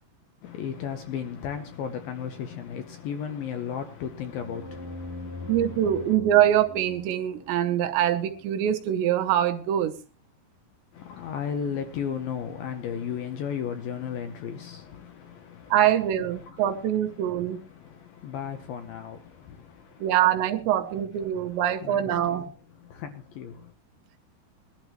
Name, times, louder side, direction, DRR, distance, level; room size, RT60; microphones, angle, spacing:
voice 1, 0.4-6.2 10.9-16.0 16.3-20.2 20.8-23.7, left 8 dB, 75° left, 2.3 m, -36 dB
sound 1, 4.3-8.9, left 2 dB, 15° right, 0.7 m, -42 dB
voice 2, 5.5-10.0 15.7-17.6 20.0-22.5, right 11 dB, 80° right, 3.1 m, -24 dB
21.0 x 12.0 x 3.0 m
omnidirectional pair, 5.1 m